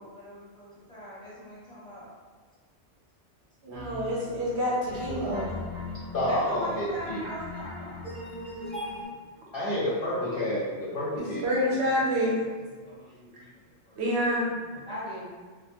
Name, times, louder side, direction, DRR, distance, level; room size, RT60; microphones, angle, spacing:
voice 1, 0.0-2.1 5.6-8.2 10.8-11.3 11.7-11.8 12.8-14.0 14.5-15.3, equal, 5° left, -11 dB, 0.8 m, -42 dB
voice 2, 3.6-5.5 11.1-12.4 14.0-14.5, equal, 70° right, -5 dB, 0.9 m, -27 dB
sound 1, 3.7-9.1, left 2 dB, 45° right, 0.8 m, -39 dB
voice 3, 6.1-7.2 9.5-11.4, equal, 60° left, -7 dB, 0.7 m, -29 dB
2.2 x 2.2 x 2.8 m, 1.4 s
omnidirectional pair, 1.2 m